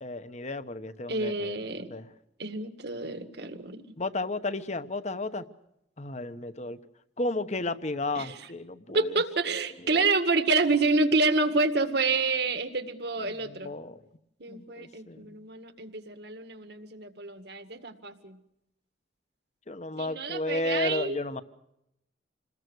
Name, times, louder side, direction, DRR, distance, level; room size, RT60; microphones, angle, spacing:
voice 1, 0.0-1.6 1.9-2.1 4.0-5.4 6.0-6.8 7.2-9.2 9.8-10.1 13.2-14.0 14.5-15.4 19.7-21.4, left 2 dB, 40° left, 12 dB, 1.1 m, -33 dB
voice 2, 1.1-1.9 2.4-3.8 8.2-8.3 8.9-13.7 14.4-18.4 20.0-21.2, right 3 dB, 60° right, 9 dB, 2.0 m, -28 dB
27.5 x 20.5 x 6.4 m, 0.81 s
head